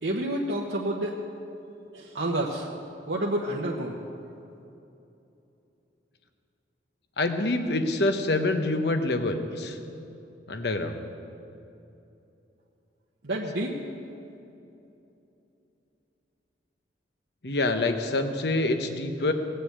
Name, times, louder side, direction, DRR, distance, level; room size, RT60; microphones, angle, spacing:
voice 1, 0.0-1.2 1.9-2.7 3.1-4.0 13.2-13.8, right 1 dB, 75° right, -2 dB, 1.1 m, -29 dB
voice 2, 7.2-9.8 10.5-11.0 17.4-19.3, left 2 dB, 65° left, 7 dB, 1.0 m, -26 dB
19.0 x 6.9 x 8.2 m, 2.8 s
head